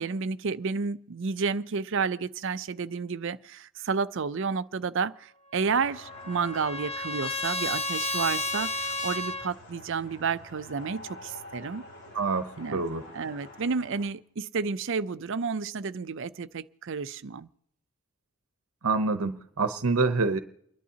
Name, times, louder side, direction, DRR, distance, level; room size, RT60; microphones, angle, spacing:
voice 1, 0.0-11.8 12.6-12.8 13.1-17.5, right 5 dB, 60° right, 0.5 m, -31 dB
sound 1, 5.6-14.1, left 1 dB, 50° left, 3.0 m, -48 dB
Trumpet, 5.6-9.5, left 2 dB, 30° left, 0.7 m, -32 dB
voice 2, 12.1-12.5 12.7-13.0 18.8-20.4, right 3 dB, 80° right, 0.9 m, -26 dB
29.5 x 11.0 x 2.9 m
head